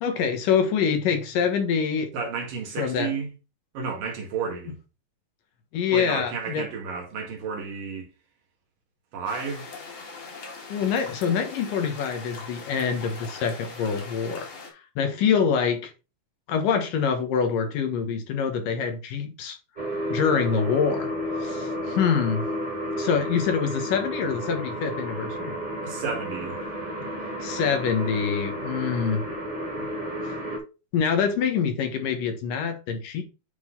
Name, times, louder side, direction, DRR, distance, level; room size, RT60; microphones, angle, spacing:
voice 1, 0.0-2.1 2.8-3.1 5.7-6.7 10.7-14.5 15.0-15.9 16.5-19.6 20.1-21.1 21.4-22.4 23.0-25.5 27.0-27.1 27.4-29.2 29.8-29.9 30.9-33.2, left 6 dB, 75° left, 2.9 m, -25 dB
voice 2, 2.1-3.3 3.7-4.8 5.9-8.1 9.1-9.7 25.8-26.6, right 5 dB, 80° right, 3.5 m, -32 dB
sound 1, 9.3-14.7, left 4 dB, 45° left, 2.5 m, -41 dB
sound 2, 19.8-30.6, equal, 15° right, 2.2 m, -32 dB
9.3 x 4.0 x 3.9 m
omnidirectional pair, 3.8 m